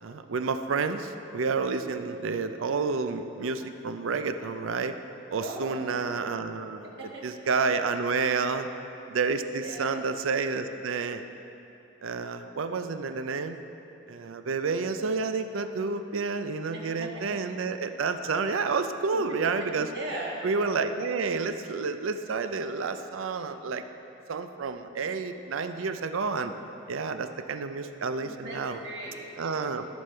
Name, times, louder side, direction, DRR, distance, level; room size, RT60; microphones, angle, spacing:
voice 1, 0.0-4.9 5.3-6.9 7.2-8.7 9.1-11.2 12.0-13.6 14.1-19.9 20.4-23.8 24.3-26.5 26.9-28.8 29.4-29.9, right 4 dB, 85° right, 9 dB, 0.5 m, -30 dB
voice 2, 5.4-5.8 6.8-7.2 9.6-10.0 16.7-17.4 19.1-19.2 19.7-20.4 28.2-29.6, right 1 dB, 55° right, -3 dB, 1.5 m, -39 dB
13.5 x 5.3 x 4.3 m, 2.9 s
head